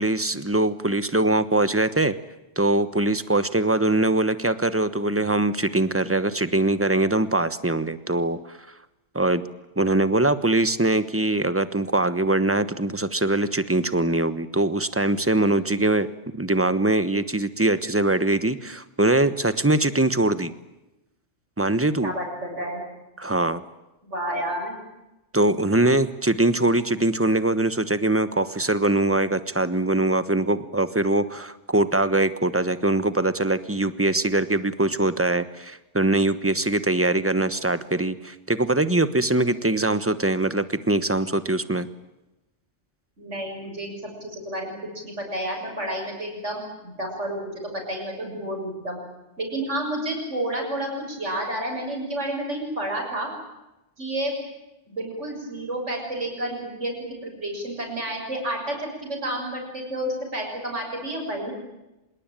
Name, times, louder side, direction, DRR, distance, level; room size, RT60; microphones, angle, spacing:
voice 1, 0.0-2.1 2.6-8.6 9.1-9.4 9.8-16.1 16.4-20.5 21.6-22.1 23.2-23.6 25.3-41.9, right 2 dB, 10° right, 12 dB, 1.1 m, -22 dB
voice 2, 22.0-22.8 24.0-24.7 43.2-44.8 45.0-47.6 47.9-49.0 49.4-53.3 54.0-54.3 54.9-56.9 57.2-61.5, right 1 dB, 80° right, 1 dB, 7.0 m, -30 dB
26.0 x 21.5 x 9.1 m, 0.97 s
omnidirectional pair, 1.2 m